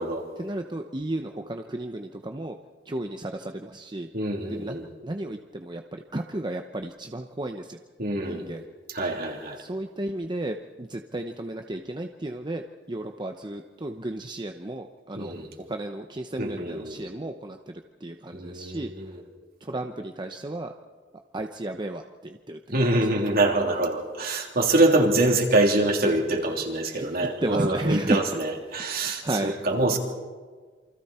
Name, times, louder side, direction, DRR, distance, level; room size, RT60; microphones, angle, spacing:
voice 1, 0.4-2.5 2.9-4.1 4.5-7.8 8.2-8.6 9.6-12.6 12.9-15.3 15.7-17.6 18.0-18.9 19.6-20.7 21.3-23.0 26.9-27.1 27.4-28.2 29.2-29.8, right 1 dB, 25° right, 5 dB, 0.8 m, -33 dB
voice 2, 4.1-4.9 8.0-8.4 8.9-9.6 15.2-15.5 16.4-17.0 18.3-19.2 22.7-30.0, right 2 dB, 55° right, 1 dB, 3.2 m, -25 dB
28.0 x 25.0 x 4.4 m, 1.5 s
head